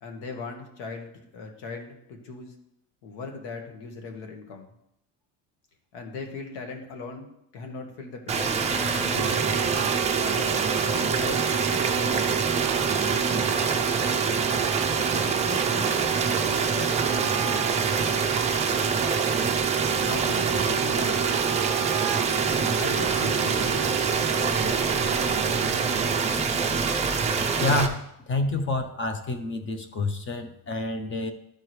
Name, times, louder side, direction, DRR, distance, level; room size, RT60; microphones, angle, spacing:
voice 1, 0.0-2.6 3.0-4.7 5.9-7.3 7.5-8.5 8.9-9.7 10.1-12.2 13.0-13.6 15.1-17.8 18.0-18.3 19.9-21.3 22.7-25.8, left 4 dB, 75° left, 3 dB, 1.7 m, -39 dB
sound 1, 8.3-27.9, right 5 dB, 15° right, 0.4 m, -25 dB
Wind instrument woodwind instrument, 8.9-26.4, right 17 dB, 65° right, 0.6 m, -32 dB
voice 2, 27.6-31.3, left 2 dB, 25° left, 9 dB, 0.6 m, -28 dB
13.0 x 4.8 x 3.2 m, 0.78 s
cardioid pair, 160°, 45 cm